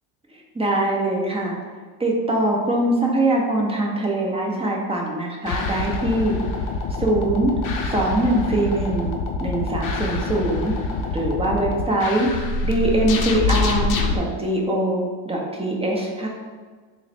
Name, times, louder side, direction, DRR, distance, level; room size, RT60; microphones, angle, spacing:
voice 1, 0.3-1.6 2.0-6.4 7.0-7.5 7.8-9.1 9.4-10.8 11.1-12.3 12.6-16.3, right 1 dB, 15° right, -1 dB, 0.7 m, -22 dB
sound 1, 5.4-14.2, left 3 dB, 45° left, 0.6 m, -26 dB
4.0 x 2.1 x 4.1 m, 1.4 s
supercardioid pair, 105°, 45 cm